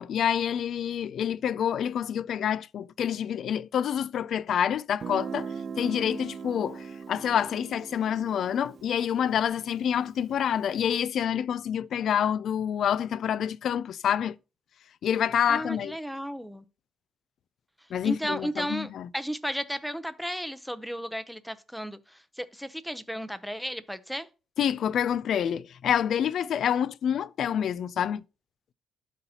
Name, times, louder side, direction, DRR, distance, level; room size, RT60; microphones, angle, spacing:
voice 1, 0.0-14.3 15.0-16.0 17.9-19.1 24.6-28.2, left 9 dB, 65° left, 0.3 m, -27 dB
Guitar, 5.0-10.6, right 6 dB, 50° right, 0.5 m, -40 dB
voice 2, 15.5-16.6 18.0-24.3, equal, ahead, 0.7 m, -34 dB
12.0 x 4.1 x 2.8 m
cardioid pair, 90°, 0 cm